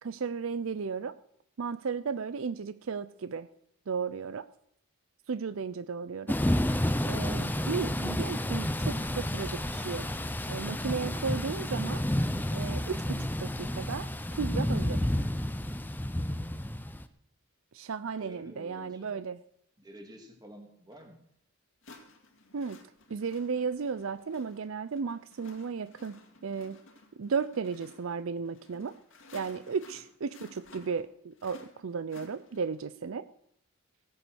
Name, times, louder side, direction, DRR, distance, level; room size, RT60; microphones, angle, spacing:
voice 1, 0.0-1.2 1.6-3.5 3.9-4.5 5.3-6.3 7.0-10.1 10.5-12.0 12.5-15.0 17.7-19.4 22.5-22.8 23.1-26.8 27.2-28.9 29.3-33.3, right 5 dB, 65° right, 14 dB, 0.5 m, -34 dB
Thunder / Rain, 6.3-17.0, left 1 dB, 10° left, 0.6 m, -30 dB
voice 2, 18.2-19.2 19.8-21.2, equal, 20° right, 2 dB, 2.6 m, -50 dB
sound 1, 20.9-21.0 21.8-32.9, left 2 dB, 60° left, 2.3 m, -55 dB
16.5 x 9.3 x 6.3 m, 0.70 s
head